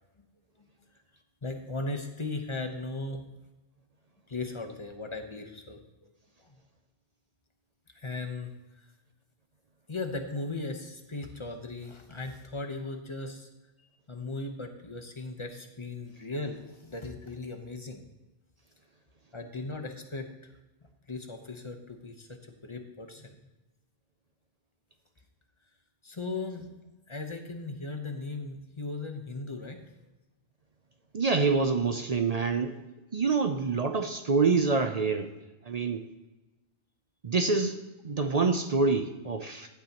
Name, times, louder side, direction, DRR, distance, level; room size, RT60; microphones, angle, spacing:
voice 1, 1.4-3.3 4.3-6.1 6.4-6.5 7.9-8.5 9.9-13.5 14.1-18.1 19.3-20.5 21.1-23.4 26.0-26.7 27.1-29.8, left 3 dB, 30° left, 5 dB, 0.9 m, -37 dB
voice 2, 31.1-32.8 33.1-35.3 35.7-36.0 37.2-37.8 38.0-39.7, right 4 dB, 45° right, 7 dB, 0.5 m, -26 dB
15.0 x 8.3 x 2.9 m, 1.1 s
omnidirectional pair, 1.2 m